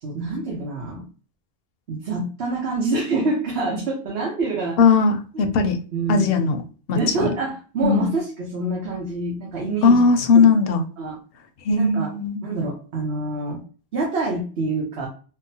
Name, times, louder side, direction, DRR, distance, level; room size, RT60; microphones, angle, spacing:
voice 1, 0.0-1.1 1.9-4.8 5.3-5.4 5.9-6.3 6.9-10.0 10.3-10.5 11.0-11.2 11.7-12.1 12.4-13.6 13.9-15.1, right 3 dB, 75° right, -1 dB, 1.0 m, -26 dB
voice 2, 4.8-5.8 6.1-6.6 6.9-7.3 7.8-8.1 9.8-10.8 11.6-12.4, left 4 dB, 70° left, 7 dB, 0.7 m, -18 dB
3.6 x 2.1 x 2.7 m, 0.38 s
omnidirectional pair, 1.1 m